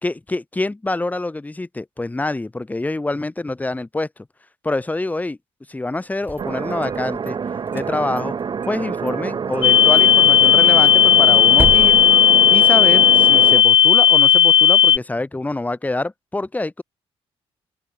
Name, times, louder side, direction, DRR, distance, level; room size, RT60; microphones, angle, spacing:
voice 1, 0.0-4.1 4.6-5.4 5.7-7.4 7.7-8.3 8.7-12.0 12.5-16.8, left 2 dB, 15° left, 3.3 m, -26 dB
sound 1, 6.1-7.3 7.7-8.8 9.1-9.2 9.5-9.7 10.0-10.1 10.4-13.0, right 3 dB, 20° right, 4.9 m, -31 dB
sound 2, 6.4-13.6, right 6 dB, 45° right, 6.8 m, -27 dB
sound 3, 9.6-15.0, left 9 dB, 50° left, 0.4 m, -13 dB
open air
cardioid pair, 110°, 11 cm